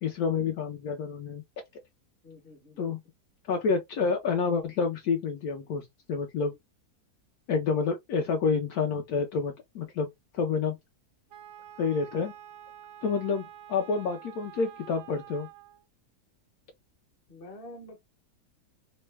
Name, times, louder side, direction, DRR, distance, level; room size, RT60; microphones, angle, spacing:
voice 1, 0.0-1.4 2.8-3.0 3.5-6.5 7.5-10.1 10.3-10.8 11.8-12.3 13.0-13.4 13.7-15.5, left 5 dB, 70° left, 1.0 m, -28 dB
voice 2, 2.2-3.0 6.5-6.6 17.3-18.0, left 1 dB, 40° left, 1.1 m, -47 dB
Wind instrument woodwind instrument, 11.3-15.8, right 11 dB, 70° right, 0.8 m, -48 dB
3.0 x 2.1 x 3.2 m
omnidirectional pair, 1.8 m